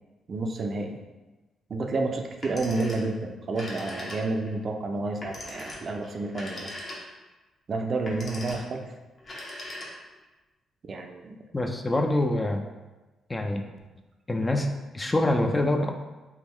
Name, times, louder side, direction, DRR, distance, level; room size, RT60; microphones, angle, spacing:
voice 1, 0.3-1.0 1.7-6.7 7.7-8.9 10.9-11.4, right 3 dB, 45° right, 3 dB, 0.4 m, -30 dB
Telephone, 2.3-3.2 3.5-4.5 5.2-7.3 7.9-8.8 9.2-10.2, left 1 dB, 45° left, 0.8 m, -40 dB
voice 2, 11.5-12.7 13.3-13.6 14.3-15.9, left 1 dB, 20° left, 4 dB, 0.3 m, -25 dB
3.5 x 2.3 x 3.2 m, 1.1 s
cardioid pair, 75°, 0 cm